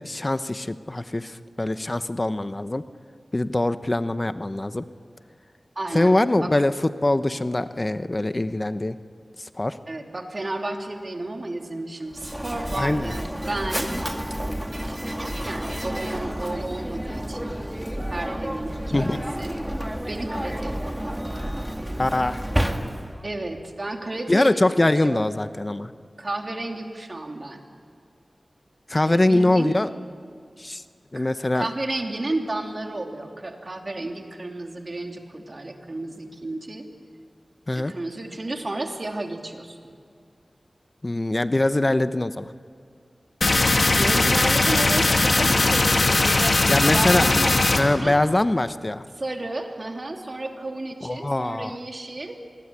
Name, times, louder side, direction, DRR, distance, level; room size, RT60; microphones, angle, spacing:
voice 1, 0.0-2.8 3.3-4.8 5.9-9.0 9.4-9.8 12.7-13.2 18.9-19.2 22.0-22.4 24.3-25.9 28.9-29.9 30.6-30.8 31.1-31.7 37.7-37.9 41.0-42.5 46.7-47.5 47.8-49.0 51.0-51.7, left 1 dB, 35° left, 11 dB, 0.9 m, -23 dB
voice 2, 5.7-6.5 9.9-13.9 14.8-17.6 18.1-19.6 20.1-21.5 23.2-25.2 26.2-27.6 29.0-29.7 31.1-31.3 31.5-36.9 37.7-39.7 44.0-48.2 49.2-52.4, right 2 dB, 50° right, 3 dB, 3.2 m, -32 dB
Mechanisms, 12.1-23.3, equal, 10° right, 2.1 m, -30 dB
sound 1, 43.4-47.8, left 2 dB, 65° left, 2.5 m, -19 dB
26.0 x 21.0 x 10.0 m, 2.2 s
cardioid pair, 45°, 0 cm